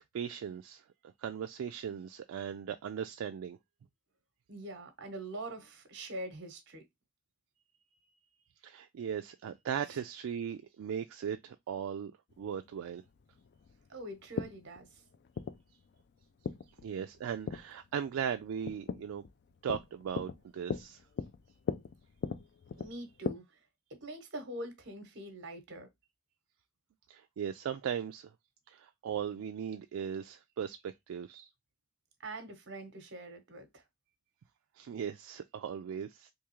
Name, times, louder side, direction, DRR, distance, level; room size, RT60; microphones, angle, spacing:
voice 1, 0.0-3.6 8.6-12.1 12.4-13.0 16.8-19.2 19.6-21.0 27.1-28.3 28.7-31.5 34.8-36.3, right 8 dB, 75° right, 0.3 m, -38 dB
voice 2, 4.5-6.8 9.9-10.0 13.9-14.9 22.8-23.4 23.9-25.9 32.2-33.8, right 1 dB, 55° right, 1.0 m, -44 dB
sound 1, 12.3-23.3, left 5 dB, 50° left, 0.3 m, -41 dB
3.5 x 2.7 x 3.0 m
head